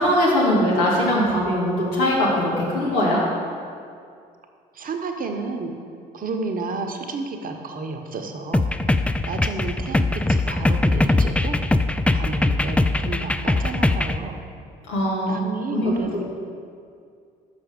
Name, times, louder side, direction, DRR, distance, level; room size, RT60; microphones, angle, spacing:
voice 1, 0.0-3.2 14.9-15.3 15.7-16.2, equal, 75° left, -4 dB, 2.0 m, -21 dB
voice 2, 4.7-5.7 6.1-8.7 9.3-11.6 12.1-14.4 15.3-16.2, right 3 dB, 40° right, 4 dB, 1.0 m, -31 dB
sound 1, 8.5-14.2, left 2 dB, 5° left, 0.3 m, -21 dB
6.0 x 5.8 x 6.9 m, 2.3 s
hypercardioid pair, 55°, 21 cm